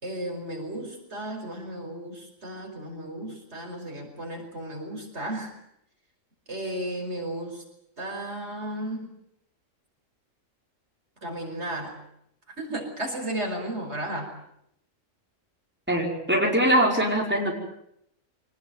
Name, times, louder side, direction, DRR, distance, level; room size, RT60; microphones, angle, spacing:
voice 1, 0.0-5.5 6.5-7.6 8.0-9.1 11.2-12.0 12.6-14.3, right 1 dB, 55° right, 2 dB, 5.7 m, -34 dB
voice 2, 15.9-17.5, right 1 dB, 10° right, -1 dB, 5.1 m, -22 dB
25.5 x 19.5 x 9.3 m, 0.77 s
omnidirectional pair, 1.3 m